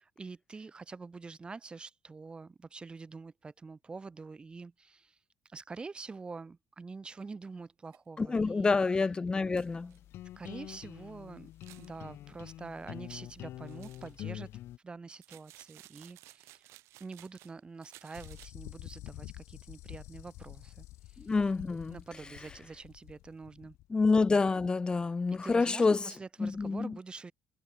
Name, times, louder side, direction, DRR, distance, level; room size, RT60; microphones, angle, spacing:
voice 1, 0.0-5.2 5.5-8.8 10.4-11.5 11.8-14.5 14.8-16.7 17.0-21.1 21.9-23.8 25.4-27.3, right 4 dB, 20° right, 3.7 m, -46 dB
sound 1, 7.2-7.3 7.9-8.0 8.4-8.5 8.8-8.9 9.6-10.0 11.5-11.9 13.7-14.2 15.2-17.5 17.8-18.5, right 18 dB, 85° right, 3.6 m, -56 dB
voice 2, 8.2-9.9 21.2-22.0 23.9-26.0 26.4-27.0, left 4 dB, 20° left, 0.8 m, -27 dB
sound 2, 9.5-14.8, left 13 dB, 65° left, 0.8 m, -46 dB
sound 3, 18.1-24.0, left 18 dB, 85° left, 1.6 m, -49 dB
cardioid pair, 135°, 5 cm